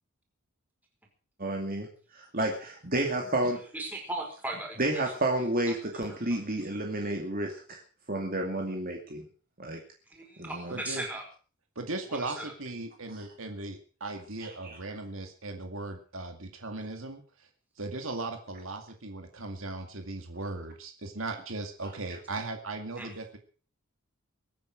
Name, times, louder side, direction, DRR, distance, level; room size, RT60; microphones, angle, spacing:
voice 1, 1.4-3.6 4.8-7.8 8.1-9.3 9.6-9.8 10.4-10.8 14.4-14.8, right 1 dB, 40° right, 2 dB, 2.5 m, -31 dB
voice 2, 3.7-5.0 5.7-6.0 6.3-6.4 10.1-11.3 12.1-12.5 23.0-23.1, right 2 dB, 10° right, 1 dB, 5.1 m, -38 dB
voice 3, 10.7-11.1 11.8-17.5 17.8-23.4, right 2 dB, 65° right, 5 dB, 2.2 m, -38 dB
22.5 x 9.4 x 6.3 m, 0.41 s
head